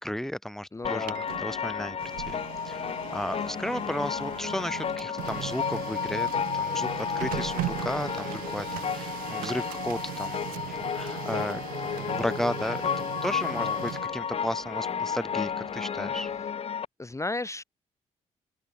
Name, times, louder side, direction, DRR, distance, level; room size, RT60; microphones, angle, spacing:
voice 1, 0.0-1.1 1.4-2.0 2.3-2.4 2.6-12.8 13.2-16.3, equal, 5° left, 2.3 m, -34 dB
voice 2, 0.7-1.2 13.5-13.8 17.0-17.6, left 2 dB, 20° left, 1.7 m, -34 dB
sound 1, 0.8-16.9, left 7 dB, 45° left, 0.6 m, -32 dB
Printer, 0.8-16.6, right 17 dB, 80° right, 6.0 m, -39 dB
open air
hypercardioid pair, 50°, 15 cm